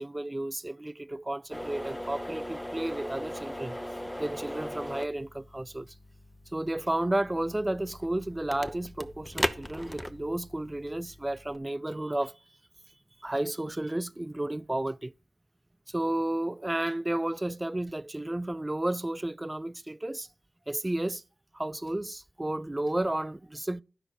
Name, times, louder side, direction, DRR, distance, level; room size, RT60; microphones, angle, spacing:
voice 1, 0.0-3.8 4.2-5.9 6.5-12.3 13.2-15.1 15.9-20.3 20.7-21.2 21.5-23.8, right 1 dB, 20° right, 0.4 m, -32 dB
sound 1, 1.5-11.6, equal, 10° left, 1.0 m, -38 dB
12.0 x 4.9 x 6.4 m
cardioid pair, 50°, 0 cm